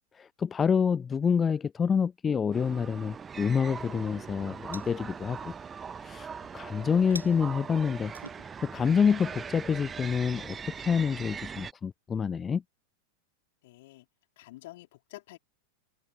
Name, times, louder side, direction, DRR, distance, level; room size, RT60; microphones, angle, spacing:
voice 1, 0.1-5.5 6.0-8.1 8.4-12.6, left 6 dB, 20° left, 0.7 m, -27 dB
sound 1, 2.5-11.7, right 6 dB, 20° right, 0.7 m, -41 dB
sound 2, 3.9-11.2, right 2 dB, 85° right, 5.6 m, -52 dB
voice 2, 13.6-14.1 14.4-15.4, left 18 dB, 50° left, 3.2 m, -48 dB
open air
figure-of-eight pair, 90°, 0 cm